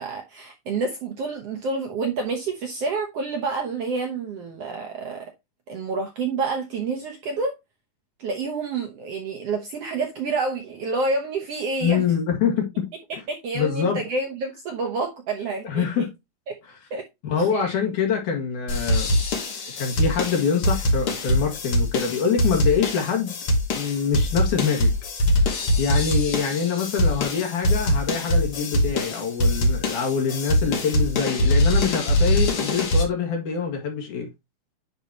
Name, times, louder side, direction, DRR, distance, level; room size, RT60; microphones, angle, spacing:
voice 1, 0.0-5.3 5.7-7.6 8.2-12.1 13.3-16.1 16.5-16.6 16.9-17.1 17.4-17.8, right 3 dB, 65° right, 1.6 m, -28 dB
voice 2, 11.8-12.9 13.5-14.0 15.6-16.1 17.2-19.2 19.8-23.3 23.8-24.9 25.8-34.3, left 6 dB, 70° left, 3.3 m, -25 dB
sound 1, 18.7-33.0, left 1 dB, 50° left, 2.3 m, -23 dB
10.0 x 4.1 x 2.8 m
omnidirectional pair, 3.9 m